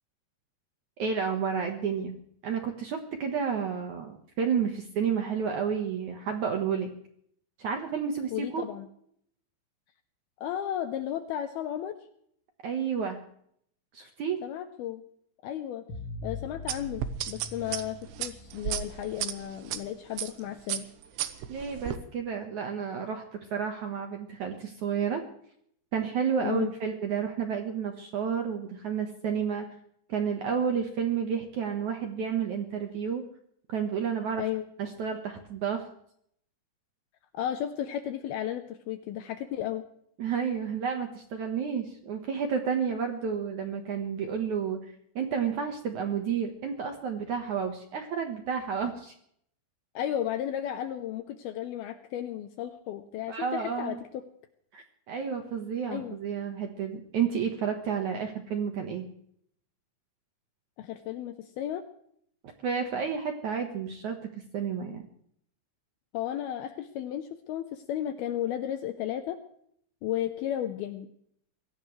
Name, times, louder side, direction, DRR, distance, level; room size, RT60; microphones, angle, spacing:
voice 1, 1.0-2.2 2.4-6.9 7.6-8.6 12.6-13.2 13.9-14.4 21.5-25.2 25.9-29.7 30.1-33.2 33.7-34.4 34.8-35.8 40.2-44.8 45.2-49.1 53.3-54.0 54.7-59.1 62.6-65.1, right 7 dB, 65° right, 4 dB, 2.0 m, -31 dB
voice 2, 8.3-8.9 10.4-11.9 14.4-15.0 15.4-15.9 16.2-20.9 26.4-26.7 34.4-34.6 37.3-39.8 49.9-54.2 55.9-56.2 60.8-61.8 66.1-69.4 70.0-71.1, left 11 dB, 75° left, 9 dB, 2.4 m, -34 dB
sound 1, 15.9-19.0, left 3 dB, 50° left, 1.3 m, -42 dB
sound 2, 16.7-19.8 20.2-20.4 20.7-22.0, right 11 dB, 90° right, 3.4 m, -33 dB
23.5 x 17.0 x 3.3 m, 0.67 s
omnidirectional pair, 5.2 m